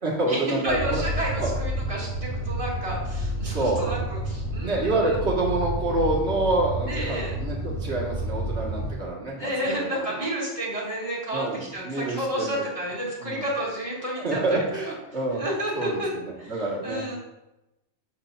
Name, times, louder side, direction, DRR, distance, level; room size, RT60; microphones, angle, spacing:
voice 1, 0.0-1.0 1.4-1.5 3.4-3.9 4.6-9.9 11.3-12.5 13.2-13.4 14.2-15.4 15.8-17.2, right 2 dB, 70° right, -4 dB, 2.0 m, -27 dB
sound 1, 0.6-8.9, equal, 80° left, 1.8 m, -30 dB
voice 2, 0.6-5.2 6.9-7.3 9.4-11.5 11.7-14.9 15.4-16.1 16.4-16.5 16.8-17.2, right 1 dB, 30° right, -5 dB, 2.4 m, -31 dB
7.3 x 7.3 x 2.5 m, 0.94 s
omnidirectional pair, 1.2 m